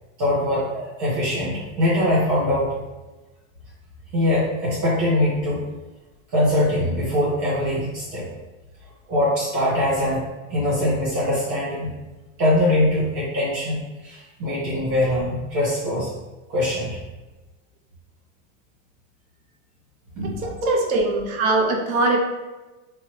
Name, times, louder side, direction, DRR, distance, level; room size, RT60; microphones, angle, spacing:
voice 1, 0.2-2.8 4.1-5.6 6.3-8.3 9.1-10.2 10.5-11.9 12.4-16.1 16.5-17.0 20.1-20.7, left 1 dB, 50° right, -7 dB, 1.3 m, -22 dB
voice 2, 20.4-22.2, right 3 dB, 90° right, 1 dB, 0.8 m, -21 dB
3.6 x 3.0 x 3.0 m, 1.1 s
supercardioid pair, 135°, 40 cm